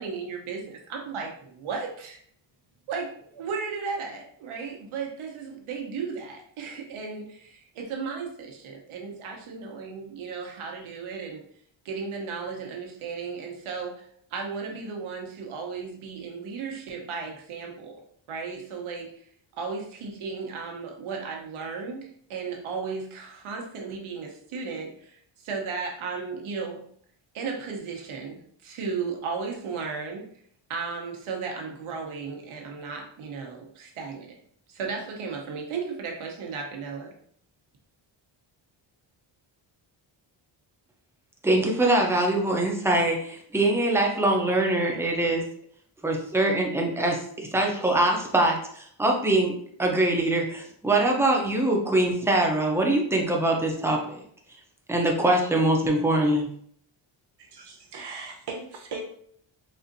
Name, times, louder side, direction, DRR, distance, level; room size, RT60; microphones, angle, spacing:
voice 1, 0.0-2.2 2.9-11.4 11.8-14.1 14.3-18.0 18.3-19.1 19.5-26.8 27.3-30.2 30.7-34.3 34.7-37.1, right 5 dB, 90° right, 1 dB, 0.9 m, -35 dB
voice 2, 41.4-45.4 46.0-54.2 54.9-56.5, right 1 dB, 5° right, 0 dB, 0.5 m, -23 dB
voice 3, 57.4-59.2, right 3 dB, 55° right, 1 dB, 0.9 m, -38 dB
4.1 x 2.5 x 2.6 m, 0.62 s
wide cardioid pair, 140°, 48 cm